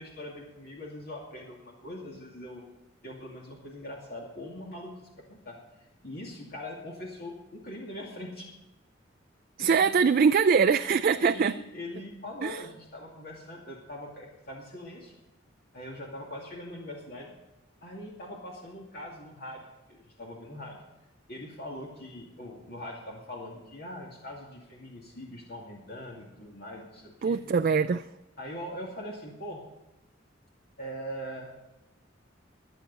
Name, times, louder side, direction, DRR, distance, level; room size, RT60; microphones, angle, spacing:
voice 1, 0.0-2.7 3.0-5.6 6.0-8.5 9.6-10.0 11.2-15.1 15.7-17.3 17.8-20.8 21.3-27.4 28.4-29.6 30.8-31.5, left 1 dB, 55° left, -2 dB, 2.4 m, -42 dB
voice 2, 9.6-11.5 12.4-12.6 27.2-28.0, right 5 dB, 50° right, 8 dB, 0.4 m, -23 dB
24.0 x 8.1 x 4.1 m, 0.99 s
head